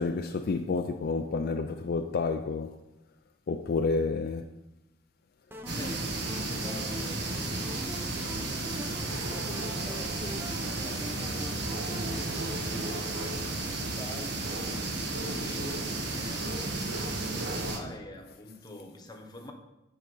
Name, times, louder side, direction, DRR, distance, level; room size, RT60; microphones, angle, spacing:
voice 1, 0.0-2.8 3.5-4.5, left 4 dB, 55° left, 0.4 m, -30 dB
sound 1, 5.5-13.5, equal, 10° right, 0.7 m, -42 dB
voice 2, 5.7-8.5 8.9-17.1 17.5-19.5, left 1 dB, 25° left, 1.1 m, -46 dB
sound 2, 5.7-17.8, right 2 dB, 65° right, 1.3 m, -33 dB
9.0 x 5.0 x 5.4 m
head